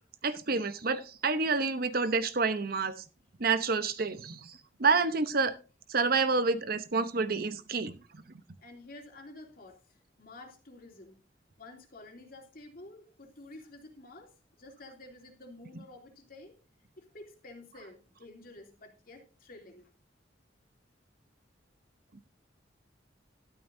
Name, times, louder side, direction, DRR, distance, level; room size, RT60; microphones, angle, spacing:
voice 1, 0.2-2.9 3.4-5.6 5.9-7.9, right 4 dB, 55° right, 11 dB, 0.9 m, -28 dB
voice 2, 8.6-11.2 11.6-16.5 17.0-19.9, left 2 dB, 50° left, 2 dB, 2.9 m, -50 dB
12.5 x 12.0 x 2.7 m, 0.32 s
head